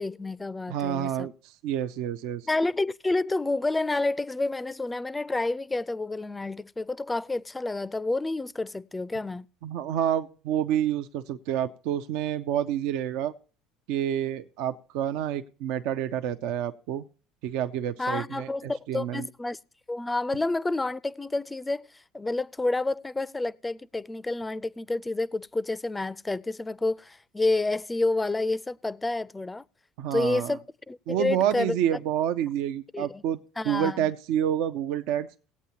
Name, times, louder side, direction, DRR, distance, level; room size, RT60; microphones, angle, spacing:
voice 1, 0.0-1.3 2.5-9.5 18.0-19.6 19.9-21.9 22.1-29.6 30.1-31.8 32.9-33.2 33.6-34.1, left 2 dB, 15° left, 0.4 m, -29 dB
voice 2, 0.7-2.5 9.6-13.3 13.9-17.0 17.4-19.3 30.0-30.6 31.1-33.4 33.6-35.3, right 10 dB, 70° right, 0.5 m, -28 dB
19.5 x 8.3 x 2.8 m
supercardioid pair, 85°, 0 cm